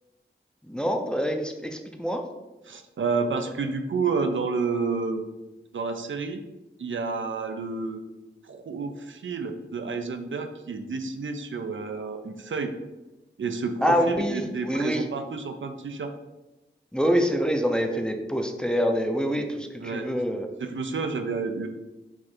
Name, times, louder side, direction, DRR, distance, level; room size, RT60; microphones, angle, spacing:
voice 1, 0.7-2.3 13.8-15.0 16.9-20.5, equal, 5° left, 4 dB, 0.5 m, -25 dB
voice 2, 2.6-5.2 5.7-6.4 6.8-12.7 13.4-16.1 19.8-20.1 20.6-21.7, right 4 dB, 75° right, 6 dB, 0.4 m, -30 dB
4.7 x 2.5 x 4.3 m, 1.1 s
wide cardioid pair, 60°, 20 cm